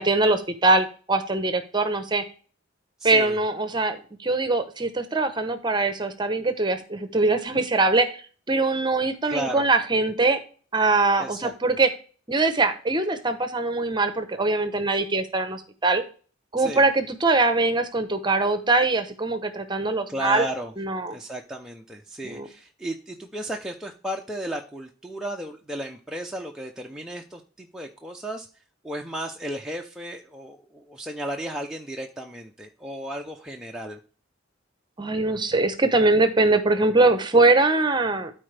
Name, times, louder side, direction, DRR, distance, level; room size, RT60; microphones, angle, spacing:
voice 1, 0.0-2.2 3.0-8.2 8.5-10.4 10.7-11.9 12.3-16.0 16.5-20.4 20.8-21.1 22.2-22.5 35.0-38.3, right 3 dB, 25° right, 9 dB, 0.9 m, -22 dB
voice 2, 3.0-3.4 9.3-9.7 11.2-11.8 16.6-16.9 20.1-20.7 21.1-28.5 28.8-34.0, right 1 dB, 5° right, 0 dB, 0.6 m, -34 dB
12.5 x 4.3 x 3.3 m, 0.39 s
head